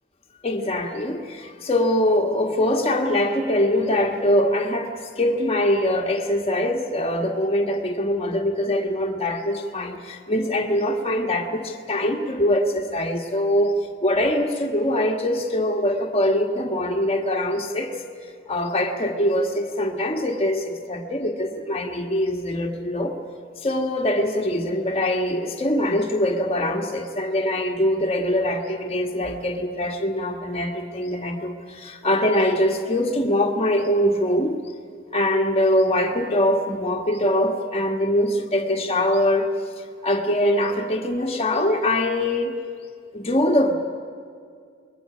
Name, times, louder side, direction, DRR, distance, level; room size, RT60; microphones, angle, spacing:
voice 1, 0.4-18.0 18.5-23.1 23.6-34.6 35.1-39.5 40.0-42.6 43.1-43.7, left 1 dB, 30° left, 1 dB, 1.6 m, -23 dB
29.0 x 21.5 x 5.1 m, 2.1 s
head